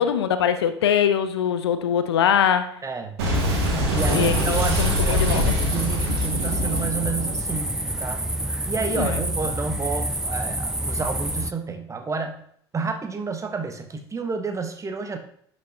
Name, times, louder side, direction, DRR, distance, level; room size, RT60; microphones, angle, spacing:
voice 1, 0.0-2.6 4.1-5.5 8.9-9.2, left 8 dB, 70° left, 11 dB, 0.6 m, -22 dB
voice 2, 2.8-3.2 3.9-8.2 8.7-12.4 12.7-15.2, right 4 dB, 20° right, 6 dB, 1.2 m, -30 dB
Boom, 3.2-8.4, left 1 dB, 65° right, 2.5 m, -24 dB
sound 1, 4.0-11.5, right 1 dB, 5° right, 0.3 m, -28 dB
11.0 x 6.3 x 2.9 m, 0.64 s
figure-of-eight pair, 60°, 14 cm